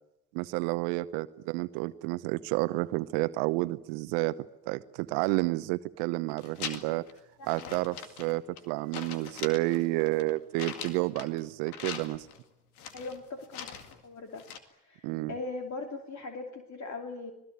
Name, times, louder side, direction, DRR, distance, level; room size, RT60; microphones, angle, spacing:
voice 1, 0.3-7.1 7.5-12.3 15.0-15.3, right 20 dB, 70° right, 14 dB, 0.9 m, -30 dB
sound 1, 6.3-7.1 7.5-8.7 8.9-11.4 11.7-12.4 12.8-14.0 14.3-14.6, left 8 dB, 80° left, 2.3 m, -42 dB
voice 2, 12.9-13.8 14.0-14.4 14.7-17.3, left 3 dB, 40° left, 3 dB, 2.8 m, -40 dB
26.0 x 20.0 x 9.4 m, 0.88 s
hypercardioid pair, 55°, 44 cm